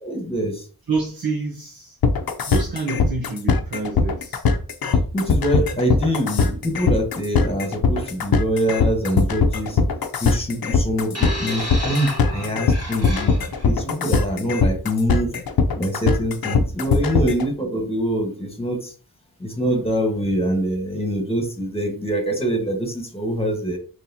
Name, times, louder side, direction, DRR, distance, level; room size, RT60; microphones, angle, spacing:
voice 1, 0.0-0.6 5.1-9.8 10.2-15.3 15.8-18.9 19.4-23.8, equal, 15° left, 1.3 m, -24 dB
voice 2, 0.9-2.0 2.5-4.4 5.7-5.9 6.3-6.4 14.4-14.6 16.5-16.7, right 4 dB, 75° right, 1.0 m, -28 dB
sound 1, 2.0-17.5, left 4 dB, 75° left, 0.6 m, -20 dB
sound 2, 11.1-13.7 14.6-14.8, equal, 40° right, 1.8 m, -32 dB
4.0 x 3.1 x 2.8 m
wide cardioid pair, 55°, 36 cm